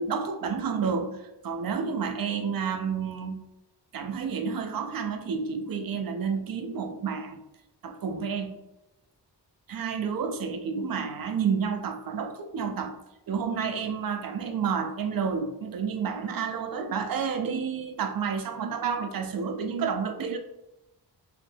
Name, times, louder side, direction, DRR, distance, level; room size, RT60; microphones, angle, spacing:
voice 1, 0.0-3.4 3.9-7.4 7.8-8.6 9.7-12.9 13.3-20.4, right 6 dB, 55° right, 7 dB, 0.5 m, -30 dB
3.2 x 3.0 x 3.2 m, 0.92 s
wide cardioid pair, 165°, 42 cm